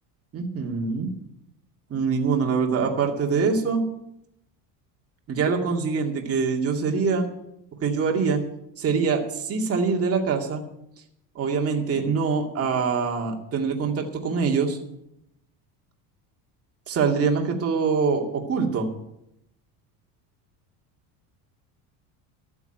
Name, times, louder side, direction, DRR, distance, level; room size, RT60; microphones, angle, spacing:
voice 1, 0.3-1.1 1.9-3.8 5.3-7.3 7.8-8.4 8.8-10.6 11.4-14.8 16.9-18.9, right 5 dB, 35° right, 1 dB, 2.3 m, -24 dB
13.5 x 7.1 x 9.3 m, 0.81 s
cardioid pair, 130°, 42 cm